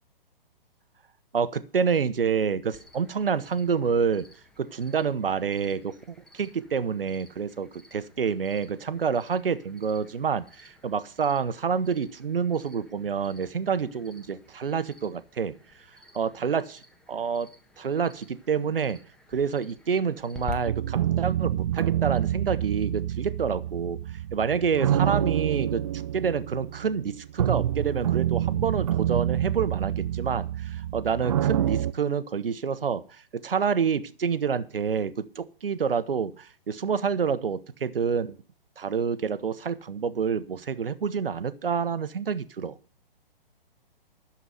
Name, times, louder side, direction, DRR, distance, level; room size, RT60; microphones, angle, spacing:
voice 1, 1.3-4.3 4.6-15.5 16.1-16.8 17.1-17.5 17.8-19.0 19.3-24.0 24.3-38.4 38.8-42.8, right 6 dB, 70° right, 15 dB, 1.0 m, -28 dB
Cricket, 2.7-20.5, left 3 dB, 5° left, 1.3 m, -50 dB
sound 1, 20.6-31.9, right 11 dB, 35° right, 0.5 m, -27 dB
11.5 x 7.3 x 7.8 m, 0.41 s
figure-of-eight pair, 125°, 29 cm